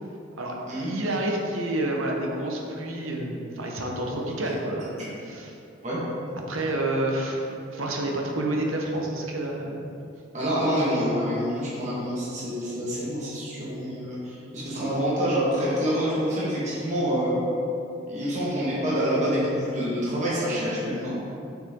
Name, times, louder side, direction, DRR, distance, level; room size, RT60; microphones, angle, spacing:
voice 1, 0.4-5.6 6.5-7.4 7.7-9.8, right 1 dB, 85° right, 0 dB, 1.1 m, -29 dB
voice 2, 10.3-17.4 18.1-21.1, equal, 35° right, -8 dB, 1.7 m, -27 dB
6.6 x 6.4 x 3.8 m, 2.7 s
head